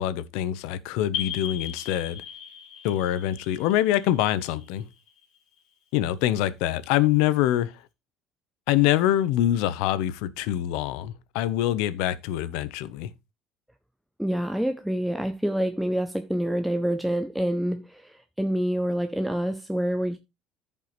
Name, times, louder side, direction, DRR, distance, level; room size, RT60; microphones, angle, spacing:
voice 1, 0.0-2.2 2.8-4.9 5.9-7.7 8.7-13.1, left 12 dB, 70° left, 0.9 m, -25 dB
sound 1, 1.1-5.6, left 10 dB, 45° left, 3.2 m, -38 dB
voice 2, 14.2-20.2, equal, ahead, 0.5 m, -27 dB
14.5 x 5.5 x 3.1 m
cardioid pair, 175°, 0 cm